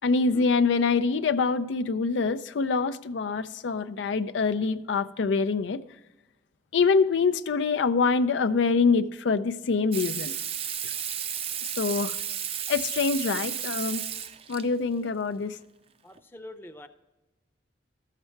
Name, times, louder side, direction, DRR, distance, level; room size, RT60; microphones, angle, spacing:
voice 1, 0.0-5.8 6.7-10.3 11.8-12.1 12.7-14.1 14.5-15.6, left 4 dB, 85° left, 0.5 m, -25 dB
Water tap faucet / Sink (filling or washing), 9.9-14.6 16.2-16.3, right 9 dB, 35° right, 0.4 m, -33 dB
voice 2, 16.0-16.9, left 1 dB, 10° left, 0.6 m, -45 dB
13.5 x 6.7 x 4.5 m
head